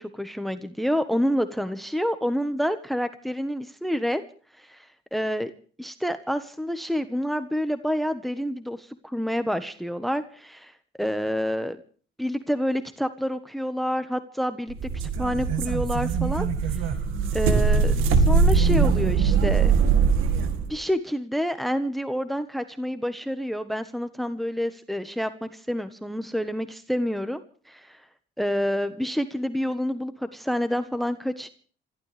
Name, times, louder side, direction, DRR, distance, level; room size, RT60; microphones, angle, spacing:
voice 1, 0.0-4.2 4.6-5.5 5.8-11.8 12.2-14.8 15.2-16.9 17.3-19.7 20.7-28.0 28.4-31.5, equal, ahead, 10 dB, 1.4 m, -28 dB
sound 1, 14.7-20.7, right 5 dB, 90° right, 2.1 m, -21 dB
26.5 x 15.0 x 3.5 m, 0.43 s
cardioid pair, 90°, 20 cm